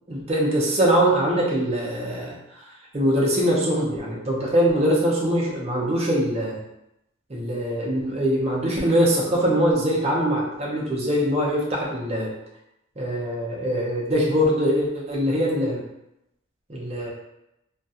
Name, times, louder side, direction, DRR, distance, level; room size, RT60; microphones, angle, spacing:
voice 1, 0.1-2.4 2.9-6.6 7.3-12.3 13.0-15.8 16.7-17.1, equal, 30° right, -4 dB, 0.5 m, -22 dB
2.3 x 2.2 x 2.7 m, 0.87 s
head